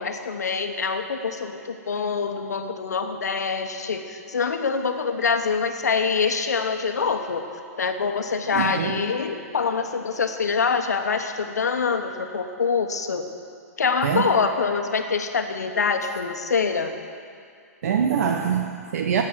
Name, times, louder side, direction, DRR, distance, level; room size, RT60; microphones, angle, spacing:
voice 1, 0.0-7.5 7.8-13.3 13.8-16.9, left 5 dB, 85° left, 6 dB, 1.2 m, -25 dB
voice 2, 8.5-8.9 14.0-14.3 17.8-19.2, right 7 dB, 65° right, 4 dB, 0.9 m, -24 dB
14.5 x 8.8 x 6.1 m, 2.4 s
hypercardioid pair, 120°, 9 cm